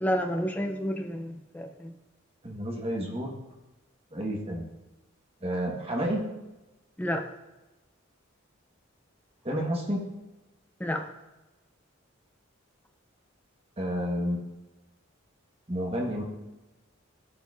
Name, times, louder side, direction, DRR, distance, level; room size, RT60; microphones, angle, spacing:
voice 1, 0.0-1.9 7.0-7.3 10.8-11.1, equal, 10° left, 4 dB, 0.5 m, -30 dB
voice 2, 2.4-3.3 4.1-4.6 5.4-6.2 9.4-10.0 13.8-14.4 15.7-16.2, equal, 30° right, 0 dB, 1.1 m, -30 dB
13.0 x 4.5 x 2.4 m, 1.0 s
head